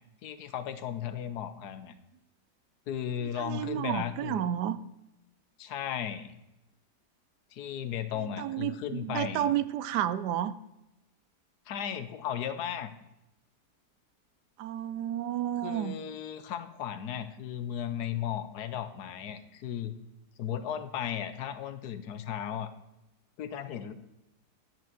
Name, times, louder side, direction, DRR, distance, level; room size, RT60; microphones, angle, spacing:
voice 1, 0.2-1.9 2.9-4.4 5.6-6.4 7.5-9.5 11.7-12.9 15.6-19.9 20.4-22.7 23.4-23.9, left 9 dB, 70° left, 11 dB, 1.3 m, -35 dB
voice 2, 3.2-4.8 8.4-10.5 14.6-16.0, right 11 dB, 80° right, 15 dB, 1.2 m, -31 dB
9.5 x 6.2 x 7.5 m, 0.88 s
omnidirectional pair, 1.8 m